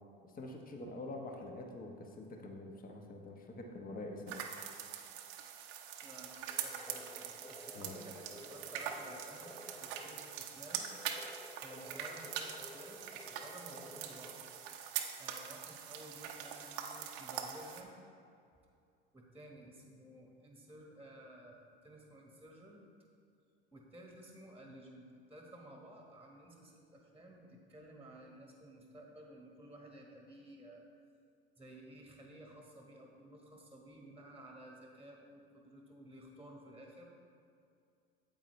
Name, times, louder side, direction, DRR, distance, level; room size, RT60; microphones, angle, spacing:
voice 1, 0.3-4.4 7.7-8.0, left 2 dB, 30° left, 2 dB, 1.2 m, -46 dB
sound 1, 4.3-17.8, right 9 dB, 70° right, 0.9 m, -43 dB
voice 2, 6.0-10.9 11.6-14.4 15.2-17.9 19.1-22.9 23.7-30.8 31.6-37.1, right 1 dB, 5° right, 0 dB, 1.3 m, -54 dB
sound 2, 6.4-14.8, left 2 dB, 10° left, 0.8 m, -54 dB
8.8 x 8.0 x 3.2 m, 2.4 s
hypercardioid pair, 75°, 29 cm